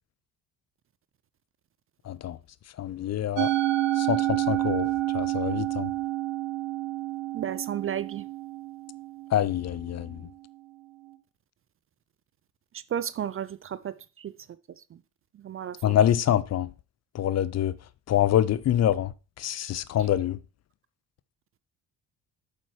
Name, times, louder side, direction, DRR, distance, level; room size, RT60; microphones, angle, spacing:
voice 1, 2.1-2.4 2.8-3.5 4.0-4.9 5.1-5.9 9.3-10.2 15.8-16.7 17.1-17.7 18.1-19.1 19.4-20.4, left 11 dB, 35° left, 0.5 m, -25 dB
Musical instrument, 3.4-9.8, right 15 dB, 65° right, 1.1 m, -29 dB
voice 2, 7.3-8.2 12.7-14.3 14.9-15.0 15.4-16.0, right 9 dB, 30° right, 0.4 m, -33 dB
8.4 x 7.6 x 3.2 m
figure-of-eight pair, 45°, 46 cm